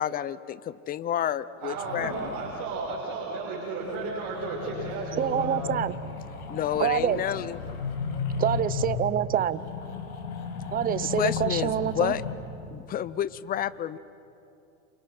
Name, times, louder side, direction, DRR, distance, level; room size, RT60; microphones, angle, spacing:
voice 1, 0.0-2.1 6.5-7.6 11.2-12.2 12.7-14.0, left 11 dB, 20° left, 18 dB, 0.5 m, -29 dB
sound 1, 1.6-2.7 3.7-12.3, left 5 dB, 85° left, 5.2 m, -35 dB
voice 2, 1.6-5.6, right 3 dB, 45° right, -6 dB, 6.4 m, -33 dB
voice 3, 5.2-6.0 6.7-7.2 8.4-9.6 10.7-12.1, right 10 dB, 20° right, 16 dB, 0.7 m, -26 dB
30.0 x 28.0 x 6.0 m, 2.7 s
hypercardioid pair, 120°, 44 cm